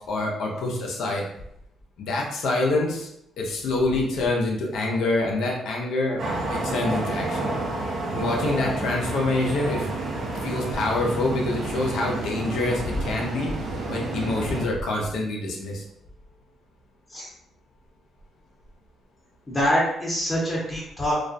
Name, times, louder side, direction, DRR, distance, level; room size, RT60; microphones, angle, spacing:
voice 1, 0.1-1.2 2.0-3.1 3.4-6.2 6.5-7.5 8.1-9.9 10.4-13.5 13.9-15.8, left 2 dB, 75° left, -1 dB, 0.6 m, -26 dB
sound 1, 6.2-14.7, right 2 dB, 60° right, 0.6 m, -30 dB
voice 2, 19.5-21.1, equal, 25° left, -5 dB, 0.8 m, -25 dB
2.3 x 2.2 x 2.5 m, 0.77 s
cardioid pair, 90°, 0 cm